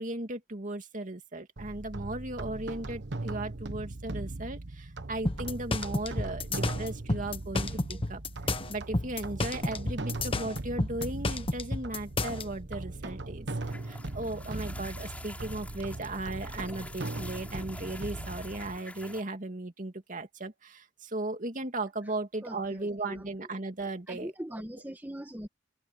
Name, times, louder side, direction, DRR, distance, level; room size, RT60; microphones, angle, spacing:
voice 1, 0.0-8.2 8.7-13.5 13.8-24.3, right 2 dB, 45° right, 2.5 m, -36 dB
sound 1, 1.6-18.8, right 2 dB, 65° right, 1.2 m, -39 dB
sound 2, 5.2-12.4, left 2 dB, 30° left, 1.2 m, -31 dB
sound 3, 13.6-19.2, left 1 dB, 10° left, 5.5 m, -47 dB
voice 2, 22.4-23.3 24.1-25.5, equal, 10° right, 1.5 m, -41 dB
head